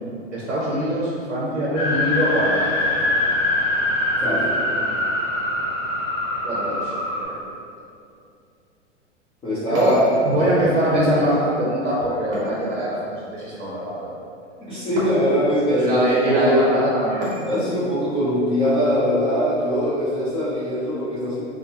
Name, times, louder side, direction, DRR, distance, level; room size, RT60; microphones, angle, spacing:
voice 1, 0.3-2.7 6.4-6.9 7.3-7.4 9.7-9.9 10.2-14.1 15.8-17.2, right 1 dB, 85° right, -7 dB, 0.7 m, -22 dB
sound 1, 1.7-7.2, left 1 dB, 70° left, 1.2 m, -23 dB
voice 2, 4.2-4.5 9.4-10.1 14.6-16.7 17.5-21.4, equal, 15° left, -14 dB, 0.4 m, -22 dB
sound 2, 9.7-10.7 12.3-13.3 15.0-15.6 17.2-17.8, left 1 dB, 25° right, 0.7 m, -34 dB
2.6 x 2.1 x 2.8 m, 2.5 s
figure-of-eight pair, 105°, 36 cm